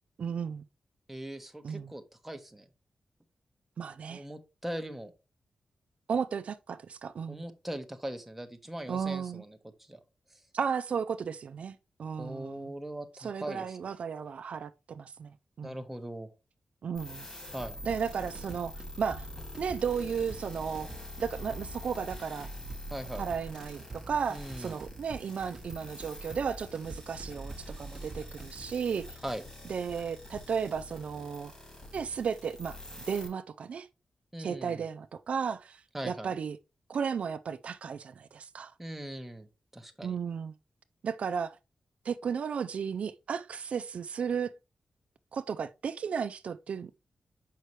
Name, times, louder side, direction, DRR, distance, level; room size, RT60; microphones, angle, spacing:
voice 1, 0.2-0.6 1.6-1.9 3.8-4.2 6.1-7.4 8.9-9.4 10.5-12.7 13.2-15.8 16.8-17.3 17.8-19.3 19.6-20.9 21.2-22.5 23.2-29.2 29.7-31.5 31.9-32.8 33.1-33.9 34.4-36.6 36.9-38.7 40.0-40.5 41.0-41.6 42.0-44.5 45.3-46.9, right 6 dB, 70° right, 0.4 m, -34 dB
voice 2, 1.1-2.7 4.1-5.1 7.3-10.0 10.3-10.4 12.2-13.8 15.6-16.3 17.5-17.8 22.9-23.3 24.3-24.8 29.2-29.4 34.3-34.8 35.9-36.3 38.8-39.5 39.7-40.2, right 1 dB, 5° right, 1.0 m, -40 dB
sound 1, 16.9-33.3, left 1 dB, 25° left, 2.7 m, -46 dB
sound 2, 17.5-28.6, right 3 dB, 30° right, 1.1 m, -45 dB
6.5 x 5.5 x 3.1 m
wide cardioid pair, 115°, 2 cm